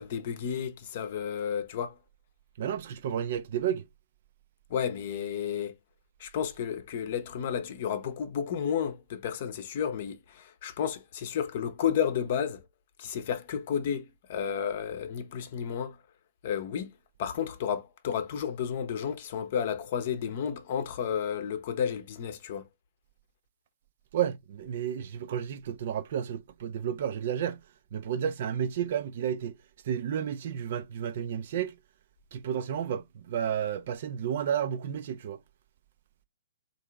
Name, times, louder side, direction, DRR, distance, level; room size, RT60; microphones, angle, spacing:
voice 1, 0.0-2.0 4.7-5.7 6.2-12.6 13.0-16.0 16.4-16.9 17.2-22.6, left 8 dB, 45° left, 0.7 m, -32 dB
voice 2, 2.6-3.9 24.1-27.6 27.9-29.5 29.8-31.7 32.3-35.4, right 9 dB, 45° right, 0.4 m, -31 dB
3.8 x 2.6 x 3.3 m
figure-of-eight pair, 120°, 0 cm